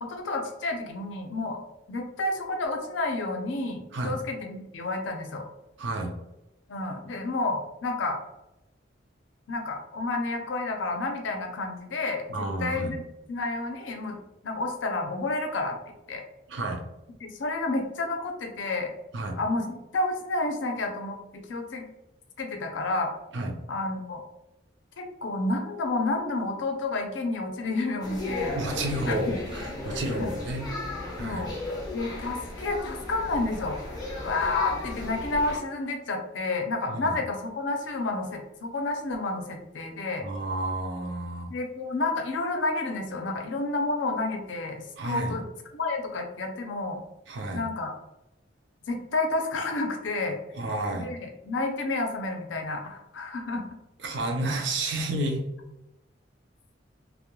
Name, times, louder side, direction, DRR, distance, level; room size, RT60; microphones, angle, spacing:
voice 1, 0.0-1.6 1.9-5.4 6.7-8.2 9.5-13.0 13.3-14.2 14.4-15.8 16.1-16.2 17.2-18.9 19.4-21.9 22.4-23.1 23.7-24.2 25.0-28.6 29.1-29.4 30.2-30.3 31.2-31.5 31.9-33.8 34.2-40.3 41.5-45.4 45.7-47.0 47.5-47.9 48.9-50.4 50.9-53.6, left 2 dB, 75° left, 3 dB, 0.5 m, -30 dB
voice 2, 5.8-6.2 12.3-13.0 16.5-16.8 19.1-19.4 23.3-23.6 28.5-30.7 31.2-31.5 36.9-37.2 40.2-41.5 45.0-45.4 47.3-47.6 50.6-51.1 54.0-55.4, right 1 dB, 65° right, 2 dB, 0.5 m, -31 dB
sound 1, 28.0-35.6, left 2 dB, 20° left, 0.5 m, -35 dB
2.3 x 2.0 x 2.9 m, 0.93 s
head